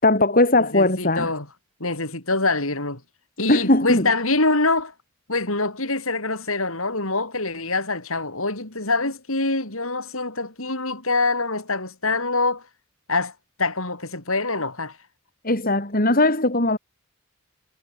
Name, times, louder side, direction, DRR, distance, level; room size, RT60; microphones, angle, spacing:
voice 1, 0.0-1.3 3.5-4.1 15.4-16.8, left 2 dB, 40° left, 3.8 m, -19 dB
voice 2, 0.7-1.5 1.8-3.0 3.4-4.9 5.3-12.6 13.1-13.3 13.6-15.0, left 3 dB, 65° left, 7.0 m, -25 dB
head